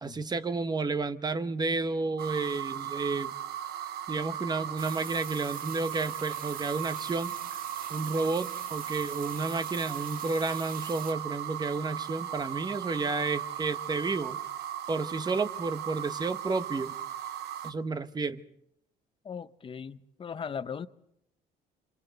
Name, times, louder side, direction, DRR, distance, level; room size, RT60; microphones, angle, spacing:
voice 1, 0.0-3.3 4.1-7.3 7.9-14.4 14.9-16.9 17.6-18.4, right 3 dB, 25° right, 1.0 m, -31 dB
sound 1, 2.2-17.7, right 10 dB, 75° right, 1.0 m, -37 dB
sound 2, 4.8-11.1, right 7 dB, 60° right, 1.5 m, -44 dB
voice 2, 19.2-20.9, left 6 dB, 30° left, 0.8 m, -38 dB
28.5 x 26.0 x 4.1 m
cardioid pair, 110°, 17 cm